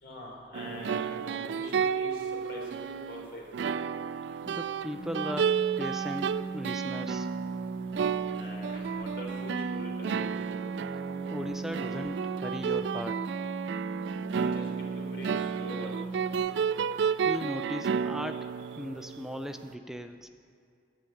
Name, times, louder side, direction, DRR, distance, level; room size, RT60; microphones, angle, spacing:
voice 1, 0.0-3.4 8.4-10.3 14.3-15.9, left 1 dB, 75° left, -2 dB, 3.6 m, -43 dB
sound 1, 0.5-19.5, right 7 dB, 85° right, 0.3 m, -32 dB
voice 2, 4.5-7.3 11.3-13.2 17.2-18.5 18.8-20.3, equal, ahead, 7 dB, 0.4 m, -37 dB
sound 2, 4.9-16.4, right 3 dB, 20° right, 3.8 m, -38 dB
11.5 x 8.9 x 8.4 m, 2.3 s
head